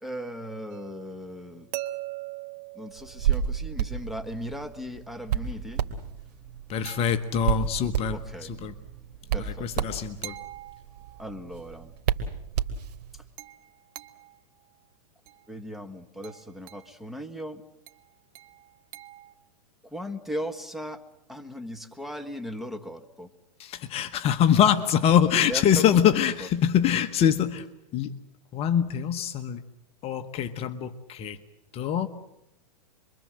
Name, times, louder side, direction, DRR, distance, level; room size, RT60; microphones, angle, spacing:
voice 1, 0.0-1.7 2.7-6.4 6.6-6.8 8.1-8.6 9.3-9.8 11.2-11.9 13.1-13.2 15.5-17.6 19.8-23.3 25.5-26.5, equal, ahead, 1.5 m, -38 dB
sound 1, 0.7-3.8 6.8-7.7 10.2-11.4 13.4-14.4 15.3-15.5 16.2-17.0 17.9-19.3, right 16 dB, 45° right, 1.5 m, -42 dB
Hands, 3.0-13.2, right 9 dB, 75° right, 2.7 m, -31 dB
voice 2, 6.7-8.7 9.5-10.3 23.6-27.7 27.9-28.1 28.5-29.6 30.0-31.4 31.7-32.1, left 9 dB, 30° left, 1.2 m, -24 dB
27.0 x 23.5 x 7.7 m
hypercardioid pair, 130°, 21 cm